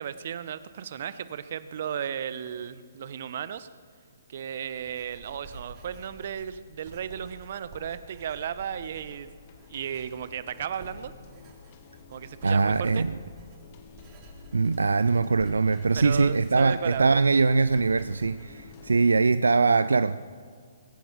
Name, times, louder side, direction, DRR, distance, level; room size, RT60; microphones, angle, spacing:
voice 1, 0.0-3.7 4.3-9.3 9.7-11.1 12.1-13.0 16.0-17.2, right 8 dB, 55° right, 0.8 m, -35 dB
Writing, 4.3-19.5, right 1 dB, 30° right, 3.4 m, -50 dB
sound 1, 8.4-19.2, left 6 dB, 40° left, 1.4 m, -51 dB
voice 2, 12.4-13.2 14.5-20.2, right 4 dB, 80° right, 0.4 m, -22 dB
22.0 x 9.0 x 7.3 m
figure-of-eight pair, 130°, 0 cm